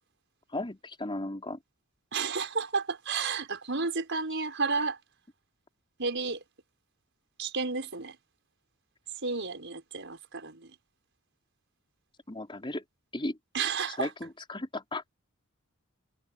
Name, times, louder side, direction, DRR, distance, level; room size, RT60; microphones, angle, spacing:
voice 1, 0.5-1.6 12.3-12.8 13.1-13.4 14.0-15.1, left 2 dB, 25° left, 4.1 m, -35 dB
voice 2, 2.1-5.0 6.0-6.4 7.4-8.2 9.2-10.8 13.5-14.1, right 4 dB, 60° right, 5.7 m, -32 dB
head